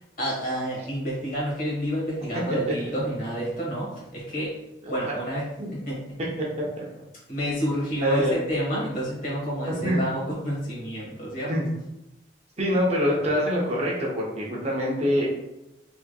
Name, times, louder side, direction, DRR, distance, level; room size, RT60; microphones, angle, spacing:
voice 1, 0.2-6.0 7.3-11.5, equal, 50° left, -5 dB, 1.3 m, -29 dB
voice 2, 8.0-8.4 8.7-8.8 9.8-10.0 11.5-11.7 12.6-15.3, equal, 35° right, -3 dB, 0.7 m, -24 dB
3.4 x 3.1 x 2.2 m, 0.90 s
head